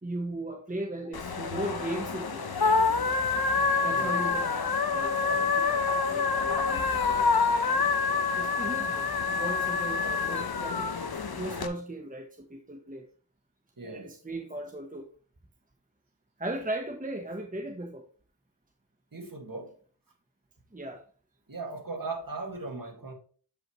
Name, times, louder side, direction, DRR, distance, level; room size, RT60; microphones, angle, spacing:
voice 1, 0.0-2.5 3.8-7.3 7.9-10.9 11.4-13.1 13.8-15.1 16.4-18.0 20.7-21.0, right 1 dB, 15° right, 1.1 m, -37 dB
sound 1, 1.1-11.7, left 4 dB, 50° left, 1.0 m, -27 dB
voice 2, 13.8-14.1 19.1-19.7 21.5-23.1, right 3 dB, 45° right, 2.3 m, -38 dB
8.3 x 5.5 x 3.1 m
cardioid pair, 45°, 47 cm